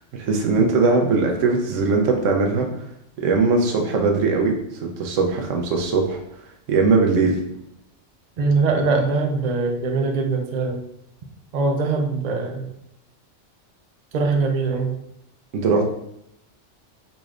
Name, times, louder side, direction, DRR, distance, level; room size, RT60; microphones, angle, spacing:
voice 1, 0.1-2.7 3.2-4.6 4.8-6.2 6.7-7.4 15.5-15.9, right 4 dB, 90° right, 2 dB, 1.0 m, -20 dB
voice 2, 8.4-10.8 11.5-12.7 14.1-15.0, right 3 dB, 55° right, 3 dB, 0.5 m, -22 dB
4.0 x 3.1 x 2.4 m, 0.78 s
omnidirectional pair, 1.3 m